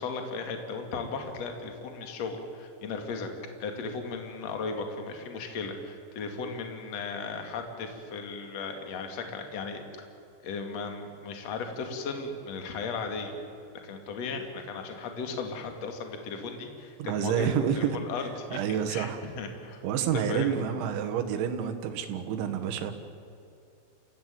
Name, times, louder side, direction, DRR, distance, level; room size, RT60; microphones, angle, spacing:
voice 1, 0.0-3.3 3.6-9.8 10.4-13.3 13.8-18.2 18.5-18.6 18.9-19.1 19.4-20.6, left 4 dB, 45° left, 5 dB, 2.8 m, -36 dB
voice 2, 17.0-18.1 18.5-19.2 19.8-22.9, right 8 dB, 75° right, 7 dB, 3.8 m, -29 dB
28.0 x 16.5 x 9.5 m, 2.6 s
omnidirectional pair, 5.5 m